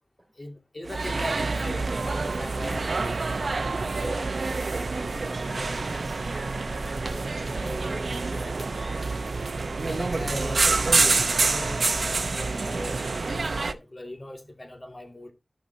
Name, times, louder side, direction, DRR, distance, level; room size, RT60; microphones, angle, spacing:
voice 1, 0.4-3.5 3.7-5.2 9.8-10.8 11.2-15.3, left 1 dB, 35° left, 2.2 m, -39 dB
sound 1, 0.9-13.7, right 3 dB, 70° right, 0.7 m, -27 dB
voice 2, 5.4-9.1, equal, 5° left, 3.4 m, -42 dB
14.5 x 5.7 x 2.7 m
wide cardioid pair, 85°, 0 cm